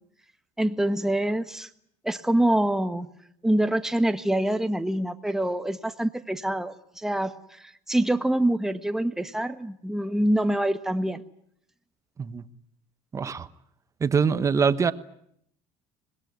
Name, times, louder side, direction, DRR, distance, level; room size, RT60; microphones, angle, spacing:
voice 1, 0.6-1.7 2.0-3.1 3.4-11.2, right 1 dB, 5° right, 8 dB, 1.3 m, -25 dB
voice 2, 13.1-13.5 14.0-14.9, right 6 dB, 25° right, 12 dB, 1.1 m, -23 dB
26.0 x 20.5 x 9.5 m, 0.72 s
cardioid pair, 130°, 13 cm